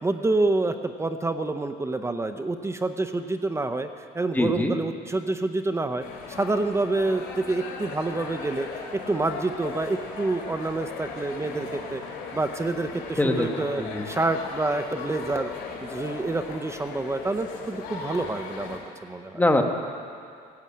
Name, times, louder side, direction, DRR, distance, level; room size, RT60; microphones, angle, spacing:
voice 1, 0.0-8.7 8.9-12.0 12.3-15.5 15.8-19.4, right 2 dB, 15° right, 8 dB, 0.7 m, -28 dB
voice 2, 4.3-4.7 13.2-13.5 13.8-14.1 19.3-19.6, left 1 dB, 10° left, 4 dB, 1.5 m, -22 dB
sound 1, 6.0-18.8, left 4 dB, 80° left, 2.9 m, -38 dB
16.5 x 8.9 x 8.5 m, 2.3 s
cardioid pair, 110°, 17 cm